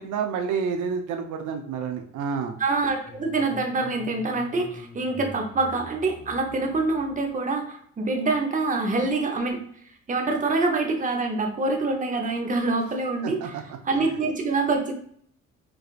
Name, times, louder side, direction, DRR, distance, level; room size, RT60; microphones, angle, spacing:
voice 1, 0.0-2.6 13.2-13.6, right 6 dB, 80° right, 5 dB, 0.5 m, -29 dB
voice 2, 2.6-9.6 10.1-13.6 13.8-14.9, right 3 dB, 25° right, 3 dB, 0.7 m, -25 dB
sound 1, 3.1-7.4, left 2 dB, 25° left, 0.6 m, -45 dB
4.6 x 2.4 x 2.4 m, 0.64 s
cardioid pair, 90°, 30 cm